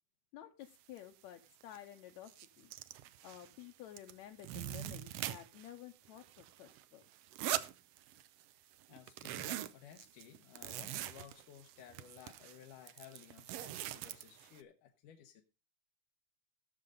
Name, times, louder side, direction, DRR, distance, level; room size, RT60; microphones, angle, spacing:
voice 1, 0.3-2.7 3.2-7.0, left 12 dB, 75° left, 3 dB, 2.0 m, -52 dB
sound 1, 1.0-1.1 1.5-1.8 2.1-3.6 4.0-5.7 6.0-8.4 8.7-14.6, right 13 dB, 75° right, 1.5 m, -43 dB
voice 2, 8.5-15.4, left 9 dB, 90° left, 3 dB, 2.6 m, -57 dB
18.0 x 6.7 x 3.8 m, 0.31 s
omnidirectional pair, 3.6 m